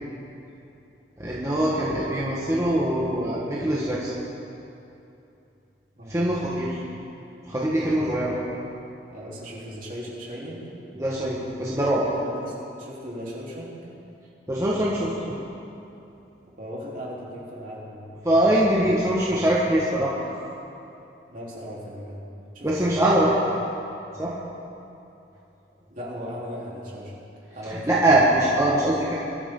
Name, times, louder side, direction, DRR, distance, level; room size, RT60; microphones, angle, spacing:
voice 1, 1.2-4.1 6.1-6.8 7.5-8.4 11.0-12.0 14.5-15.4 18.2-20.5 22.6-23.3 24.2-24.3 27.7-29.1, right 1 dB, 20° right, -7 dB, 1.6 m, -23 dB
voice 2, 6.0-6.3 8.0-8.1 9.1-10.7 12.2-13.8 16.4-18.1 18.7-19.5 21.3-22.3 22.5-23.3 25.9-28.2, equal, 50° right, -6 dB, 3.8 m, -38 dB
21.0 x 13.0 x 3.9 m, 2.8 s
head